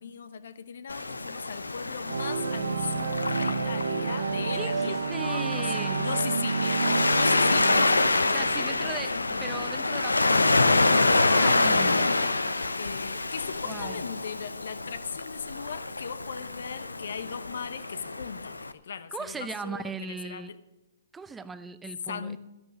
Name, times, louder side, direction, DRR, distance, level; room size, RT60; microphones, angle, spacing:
voice 1, 0.0-6.8 7.1-9.6 12.8-20.6 22.1-22.4, left 6 dB, 65° left, 13 dB, 0.9 m, -38 dB
Waves surf, 0.9-18.7, left 2 dB, 90° left, 0.7 m, -27 dB
sound 1, 2.1-9.0, right 5 dB, 75° right, 0.7 m, -30 dB
voice 2, 4.5-6.1 8.2-12.2 13.6-14.0 19.1-20.6 21.1-22.4, right 5 dB, 10° right, 13 dB, 0.7 m, -39 dB
12.0 x 11.0 x 6.4 m, 1.0 s
figure-of-eight pair, 125°, 0 cm